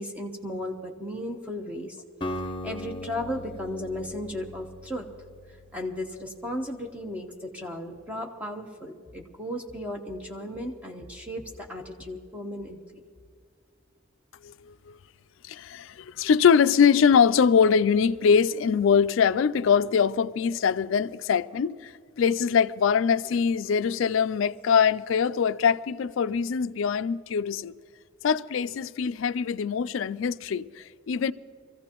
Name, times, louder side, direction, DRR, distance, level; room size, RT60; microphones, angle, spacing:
voice 1, 0.0-2.0 2.4-5.1 5.7-13.0, left 1 dB, 5° right, 0.9 m, -35 dB
Acoustic guitar, 2.2-6.3, left 1 dB, 25° left, 0.9 m, -38 dB
voice 2, 14.4-15.0 15.4-21.9 22.2-27.7 28.2-31.3, left 6 dB, 70° left, 0.4 m, -23 dB
25.0 x 15.0 x 3.0 m
head